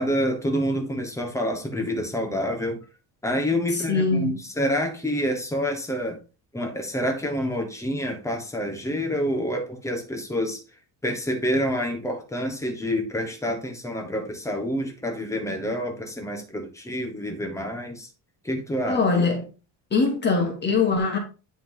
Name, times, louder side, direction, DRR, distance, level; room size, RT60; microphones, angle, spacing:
voice 1, 0.0-2.8 3.2-6.2 6.5-10.6 11.0-18.1 18.4-19.0, equal, 5° left, 1.1 m, -27 dB
voice 2, 3.7-4.4 18.8-19.5 19.9-21.2, left 4 dB, 25° left, 1.5 m, -22 dB
9.9 x 3.7 x 3.8 m
cardioid pair, 175°, 42 cm